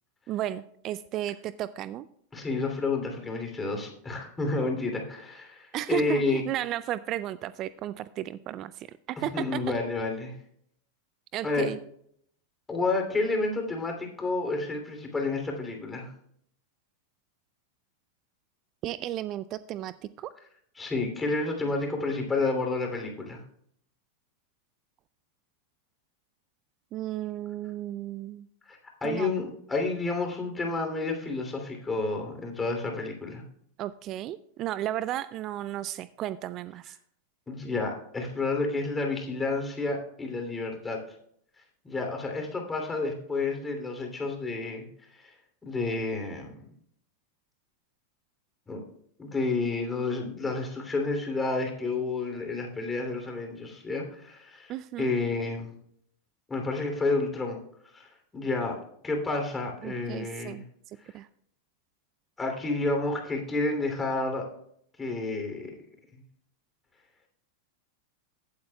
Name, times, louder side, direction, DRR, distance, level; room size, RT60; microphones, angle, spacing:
voice 1, 0.3-2.1 5.7-9.6 11.3-11.8 18.8-20.3 26.9-28.5 29.0-29.4 33.8-37.0 54.7-55.1 59.8-60.6 61.1-61.3, right 13 dB, 40° right, 16 dB, 0.3 m, -34 dB
voice 2, 2.3-6.4 9.2-10.3 11.4-11.7 12.7-16.1 20.8-23.4 28.7-33.4 37.5-41.0 41.8-44.9 45.2-45.3 45.6-46.6 48.7-48.8 49.2-55.7 56.5-57.6 57.9-60.6 62.4-64.5 65.0-65.7, left 3 dB, 15° left, 2 dB, 2.9 m, -30 dB
16.0 x 8.3 x 2.3 m, 0.67 s
hypercardioid pair, 95°, 0 cm